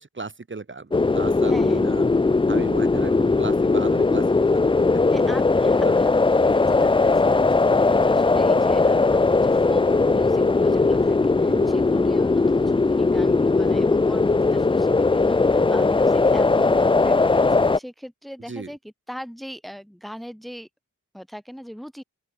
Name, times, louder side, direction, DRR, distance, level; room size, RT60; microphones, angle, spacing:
voice 1, 0.0-2.0 2.5-5.0 5.8-5.9 11.5-11.8 18.5-18.7, right 3 dB, 35° right, 1.6 m, -36 dB
sound 1, 0.9-17.8, left 3 dB, 15° left, 0.4 m, -19 dB
voice 2, 1.1-1.8 5.1-9.9 10.1-20.7 21.1-22.0, equal, ahead, 5.3 m, -39 dB
open air
wide cardioid pair, 80°, 32 cm